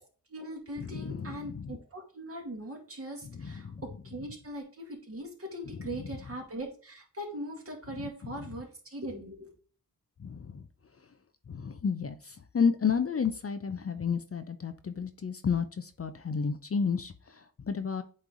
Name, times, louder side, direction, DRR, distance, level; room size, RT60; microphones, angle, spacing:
voice 1, 0.0-9.5, right 1 dB, 40° right, 0 dB, 2.4 m, -41 dB
voice 2, 0.8-1.8 3.2-3.8 8.0-8.3 10.2-10.6 11.5-18.0, left 6 dB, 40° left, 10 dB, 0.6 m, -32 dB
8.3 x 3.3 x 3.9 m, 0.41 s
wide cardioid pair, 100°, 35 cm